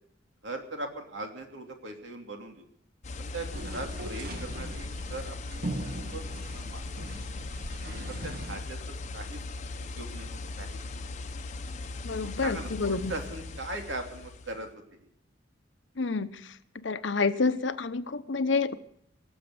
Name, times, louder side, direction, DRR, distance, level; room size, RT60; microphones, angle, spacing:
voice 1, 0.4-2.6 3.2-5.6 5.9-7.1 7.4-7.5 8.1-8.8 9.1-9.4 9.9-10.8 12.4-15.0, right 2 dB, 75° right, 3 dB, 3.0 m, -40 dB
sound 1, 3.0-14.7, left 3 dB, 40° left, 0.9 m, -39 dB
sound 2, 3.5-8.6, right 1 dB, 55° right, 1.6 m, -40 dB
voice 2, 12.0-13.1 16.0-16.3 16.8-18.7, left 4 dB, 70° left, 12 dB, 0.9 m, -28 dB
19.5 x 7.4 x 9.4 m, 0.73 s
head